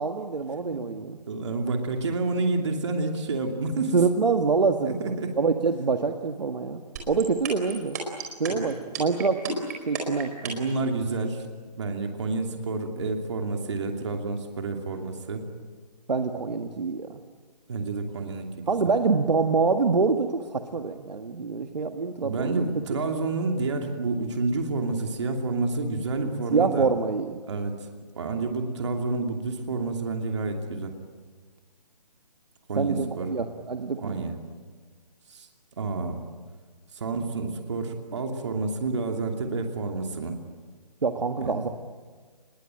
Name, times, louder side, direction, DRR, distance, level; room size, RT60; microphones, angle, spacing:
voice 1, 0.0-1.2 3.9-6.8 7.1-8.0 8.4-10.3 16.1-17.2 18.7-22.6 26.5-27.4 32.7-34.2 41.0-41.7, right 4 dB, 85° right, 6 dB, 1.7 m, -26 dB
voice 2, 1.3-4.0 4.9-5.4 8.5-8.6 10.4-11.5 11.8-15.4 17.7-18.6 22.2-26.9 27.5-27.7 28.1-30.9 32.7-33.4 34.0-34.3 35.3-35.5 35.8-36.2 36.9-40.4 41.4-41.6, right 3 dB, 45° right, 3 dB, 2.8 m, -29 dB
sound 1, 7.0-10.7, right 8 dB, 25° right, 4.5 m, -32 dB
25.5 x 22.0 x 9.0 m, 1.5 s
hypercardioid pair, 170°, 21 cm